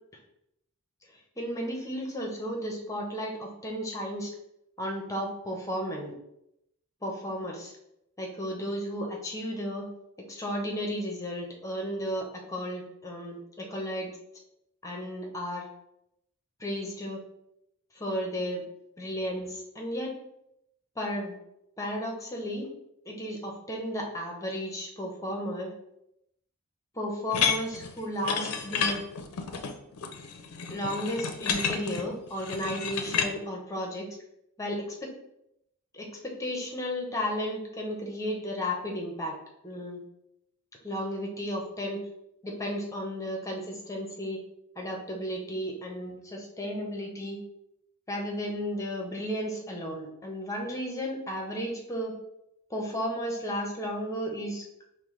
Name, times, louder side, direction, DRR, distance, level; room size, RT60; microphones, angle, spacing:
voice 1, 1.4-4.3 4.8-6.1 7.0-7.7 8.2-9.9 10.3-14.1 14.8-15.7 16.6-17.2 17.9-18.6 19.0-20.1 21.0-21.3 21.8-22.7 23.1-25.7 26.9-29.0 30.7-34.1 34.6-35.1 35.9-39.3 39.6-40.0 40.8-42.0 42.4-44.4 44.8-47.4 48.1-52.1 52.7-54.6, equal, 15° left, 0 dB, 0.7 m, -33 dB
sound 1, 27.3-33.3, left 6 dB, 85° left, 0.4 m, -31 dB
5.3 x 2.1 x 3.1 m, 0.80 s
head